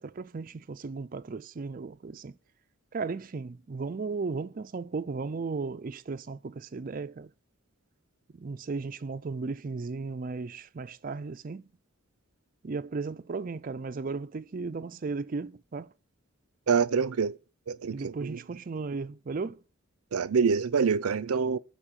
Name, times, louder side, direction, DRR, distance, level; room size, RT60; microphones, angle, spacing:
voice 1, 0.0-2.3 2.9-7.3 8.3-11.7 12.6-15.9 17.9-19.6, right 4 dB, 40° right, 0.4 m, -35 dB
voice 2, 16.7-17.3 17.7-18.4 20.1-21.6, right 5 dB, 90° right, 0.5 m, -26 dB
12.5 x 4.5 x 7.3 m
head